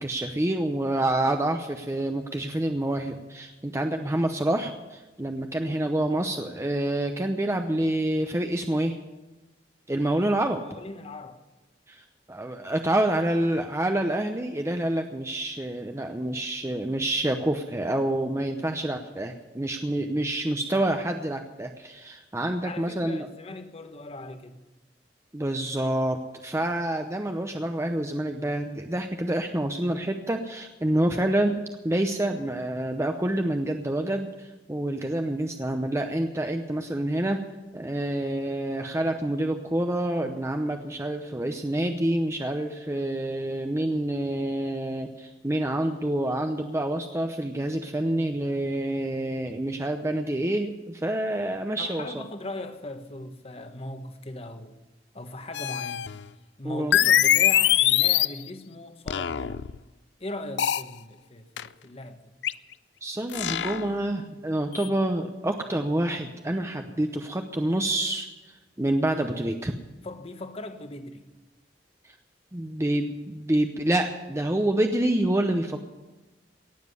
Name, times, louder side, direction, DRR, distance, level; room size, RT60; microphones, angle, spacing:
voice 1, 0.0-9.0 9.9-10.6 11.9-23.3 25.3-37.4 37.7-52.1 56.6-57.0 63.0-69.8 72.5-75.8, right 1 dB, 15° right, 0.7 m, -27 dB
voice 2, 10.5-11.4 22.6-24.6 51.8-54.7 55.1-56.1 56.6-59.6 60.2-62.2 70.0-71.3, left 2 dB, 35° left, 1.2 m, -39 dB
sound 1, 55.5-56.3 56.9-58.4 59.1-59.8 60.6-60.9 61.6-61.7 62.4-62.5 63.3-64.0 64.8-64.9, left 11 dB, 80° left, 0.4 m, -23 dB
18.0 x 7.4 x 9.5 m
head